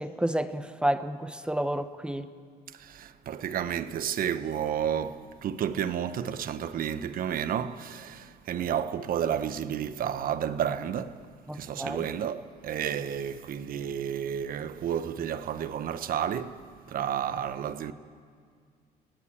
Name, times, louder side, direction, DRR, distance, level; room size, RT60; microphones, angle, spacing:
voice 1, 0.0-2.3 11.5-12.1, right 1 dB, 5° right, 1.0 m, -30 dB
voice 2, 2.7-11.2 11.5-16.5 16.9-17.9, right 9 dB, 55° right, 1.2 m, -31 dB
27.0 x 18.0 x 9.0 m
cardioid pair, 110°, 17 cm